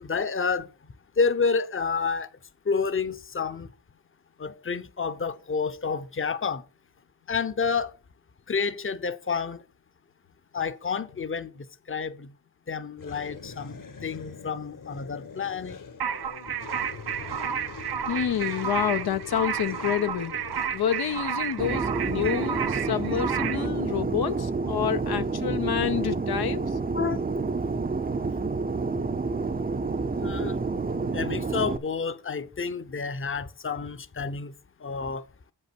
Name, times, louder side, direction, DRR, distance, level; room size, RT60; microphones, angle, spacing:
voice 1, 0.0-0.7 1.2-2.3 2.7-3.7 4.4-6.6 7.3-7.9 8.5-9.6 10.5-11.5 11.9-12.3 12.7-13.8 14.0-15.8 26.9-27.2 30.2-30.6 31.1-34.5 34.8-35.2, left 5 dB, 35° left, 0.8 m, -29 dB
sound 1, 13.0-23.3, left 5 dB, 60° left, 1.3 m, -43 dB
sound 2, 16.0-23.7, right 8 dB, 90° right, 0.6 m, -31 dB
voice 2, 18.1-20.3 20.7-26.8, left 9 dB, 80° left, 0.7 m, -28 dB
Fixed-wing aircraft airplane, 21.6-31.8, right 4 dB, 25° right, 0.6 m, -29 dB
7.5 x 5.6 x 5.9 m
cardioid pair, 55°, 37 cm